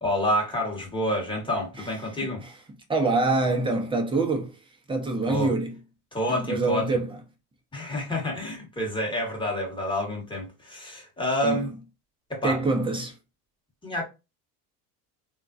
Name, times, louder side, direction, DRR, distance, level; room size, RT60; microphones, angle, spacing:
voice 1, 0.0-2.4 5.3-5.5 6.1-7.0 7.7-11.7 12.3-12.6 13.8-14.0, left 1 dB, 10° left, 1.2 m, -28 dB
voice 2, 2.9-4.6 4.9-5.7 6.3-7.2 11.4-11.6 12.4-13.1, right 3 dB, 10° right, 0.7 m, -25 dB
3.6 x 2.5 x 2.5 m
supercardioid pair, 120°, 45 cm